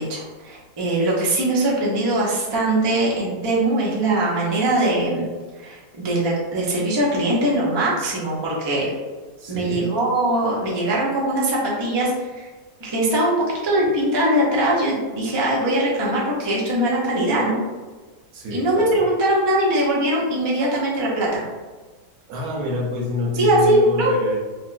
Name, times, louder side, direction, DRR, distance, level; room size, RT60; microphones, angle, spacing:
voice 1, 0.0-5.3 5.6-8.9 9.5-12.5 12.8-17.6 18.5-21.4 23.3-24.2, right 1 dB, 35° right, -5 dB, 0.4 m, -21 dB
voice 2, 9.4-9.9 18.3-19.0 22.3-24.4, left 2 dB, 90° right, -2 dB, 1.3 m, -28 dB
4.3 x 2.0 x 2.5 m, 1.3 s
omnidirectional pair, 1.6 m